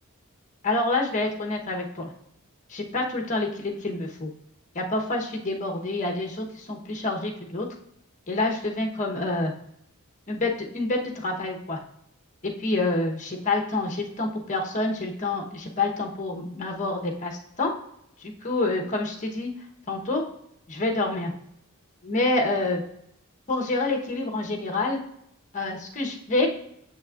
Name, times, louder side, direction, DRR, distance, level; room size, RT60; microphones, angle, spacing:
voice 1, 0.6-2.1 2.7-4.3 4.7-7.7 8.3-9.5 10.3-11.8 12.4-17.7 18.2-19.5 19.9-20.2 20.7-21.3 22.0-22.8 23.5-25.0 25.5-26.5, left 2 dB, 35° left, 1 dB, 1.0 m, -27 dB
7.1 x 6.3 x 2.4 m, 0.75 s
head